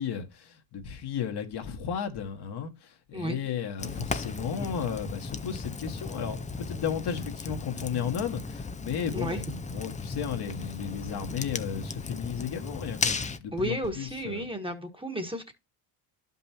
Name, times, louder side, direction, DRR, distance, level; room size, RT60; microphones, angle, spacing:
voice 1, 0.0-14.5, left 7 dB, 50° left, 1.7 m, -34 dB
Fire, 3.8-13.4, left 4 dB, 15° left, 0.6 m, -35 dB
voice 2, 13.5-15.5, equal, 10° right, 1.5 m, -33 dB
11.5 x 5.5 x 2.8 m
supercardioid pair, 80°, 50 cm